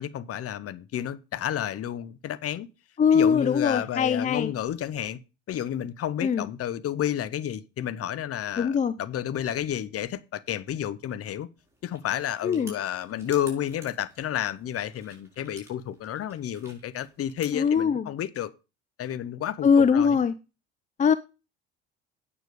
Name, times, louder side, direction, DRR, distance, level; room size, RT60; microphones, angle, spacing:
voice 1, 0.0-2.7 3.1-5.2 5.5-11.5 11.8-18.5 19.0-20.2, left 10 dB, 40° left, 0.9 m, -31 dB
voice 2, 3.0-4.5 6.2-6.5 8.6-8.9 12.4-12.7 17.5-18.0 19.6-20.3 21.0-21.1, left 6 dB, 20° left, 0.5 m, -21 dB
sound 1, 11.6-17.5, right 1 dB, 10° right, 4.8 m, -52 dB
9.1 x 6.7 x 5.1 m
hypercardioid pair, 60°, 34 cm